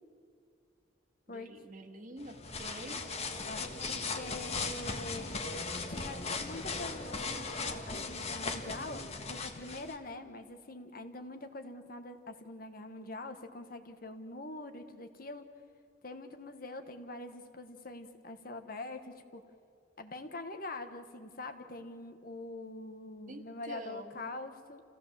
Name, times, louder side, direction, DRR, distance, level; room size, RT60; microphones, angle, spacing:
voice 1, 1.3-3.0 23.3-24.4, right 1 dB, 45° right, 5 dB, 1.9 m, -47 dB
sound 1, 2.2-10.0, left 4 dB, 35° left, 1.6 m, -38 dB
voice 2, 3.4-5.3 5.9-15.4 16.0-19.4 20.0-24.8, left 2 dB, 50° left, 7 dB, 1.4 m, -44 dB
28.0 x 16.0 x 7.4 m, 2.4 s
head